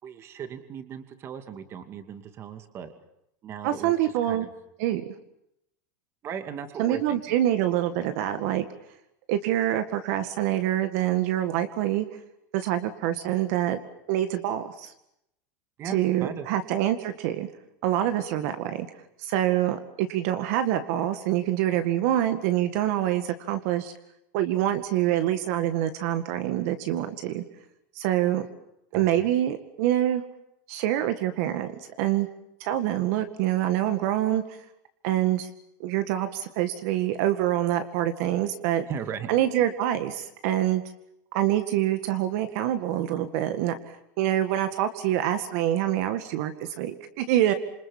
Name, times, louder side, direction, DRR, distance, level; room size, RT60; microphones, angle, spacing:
voice 1, 0.0-2.9 3.4-4.5 6.2-7.4 15.8-16.5 28.9-29.3 38.9-39.3, right 7 dB, 25° right, 8 dB, 2.5 m, -37 dB
voice 2, 3.6-4.5 4.8-5.1 6.8-8.7 9.3-12.1 12.5-13.8 14.1-14.9 15.9-17.5 17.8-18.9 19.2-23.9 24.3-27.4 28.0-28.5 28.9-30.2 30.7-31.7 32.0-32.3 32.6-34.6 35.0-35.5 35.8-38.9 39.3-40.8 41.3-47.5, right 12 dB, 55° right, 9 dB, 2.0 m, -26 dB
27.5 x 26.5 x 7.3 m, 0.80 s
supercardioid pair, 165°, 10 cm